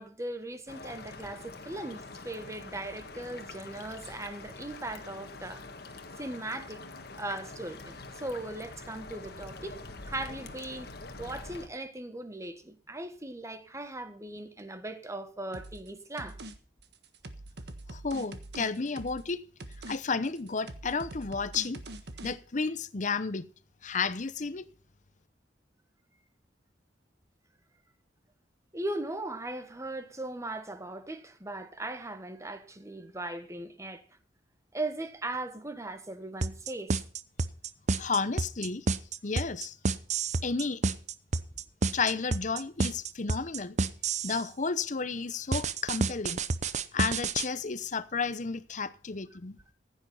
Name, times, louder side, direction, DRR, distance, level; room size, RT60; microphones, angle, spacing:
voice 1, 0.0-5.6 6.2-6.8 7.2-9.8 10.0-10.9 11.2-16.4 28.7-34.0 34.7-36.9, right 2 dB, 15° right, 1.4 m, -38 dB
sound 1, 0.7-11.7, left 3 dB, 60° left, 1.6 m, -45 dB
sound 2, 15.5-15.9 16.2-16.5 16.8-19.3 19.6-20.0 20.3-22.3, right 1 dB, 65° right, 1.5 m, -44 dB
voice 2, 17.9-19.4 19.9-21.8 22.2-23.5 23.8-24.6 38.0-38.9 39.2-39.8 40.4-40.8 41.9-43.8 44.2-46.4 46.9-49.6, left 4 dB, 45° left, 0.8 m, -32 dB
sound 3, 36.4-44.4 45.5-47.5, right 3 dB, 40° right, 0.7 m, -29 dB
15.0 x 9.4 x 5.6 m
head